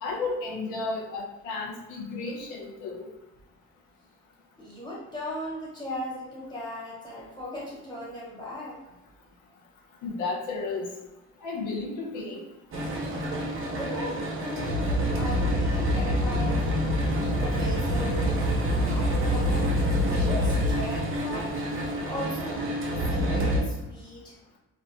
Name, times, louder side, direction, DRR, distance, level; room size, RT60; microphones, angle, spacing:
voice 1, 0.0-3.1 10.0-10.9 11.4-12.4, left 3 dB, 90° left, -1 dB, 0.6 m, -33 dB
voice 2, 4.6-8.8 13.7-16.6 17.0-18.5 18.8-19.7 20.1-21.6 22.0-22.7 23.1-24.4, left 1 dB, 15° left, -6 dB, 1.2 m, -38 dB
sound 1, 12.7-23.6, equal, 45° right, 0.7 m, -26 dB
2.5 x 2.2 x 2.6 m, 1.0 s
cardioid pair, 90°, 30 cm